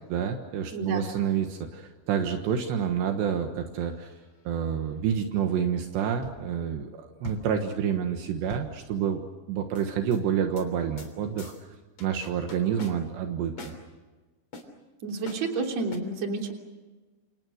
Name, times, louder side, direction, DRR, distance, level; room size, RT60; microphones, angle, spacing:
voice 1, 0.1-4.2 4.4-9.2 9.5-11.5 12.0-13.8, right 8 dB, 75° right, 5 dB, 3.5 m, -28 dB
voice 2, 0.7-1.0 15.0-16.5, right 3 dB, 40° right, 3 dB, 4.2 m, -30 dB
sound 1, 3.8-4.4 6.2-6.7 7.2-9.3 9.8-10.2 10.6-10.7 11.0-11.1 11.4-11.6 12.0-13.2 13.6-13.8 14.5-14.6 15.3-15.5 15.9-16.0, left 2 dB, 35° left, 4.0 m, -43 dB
28.5 x 28.0 x 6.5 m, 1.3 s
omnidirectional pair, 5.1 m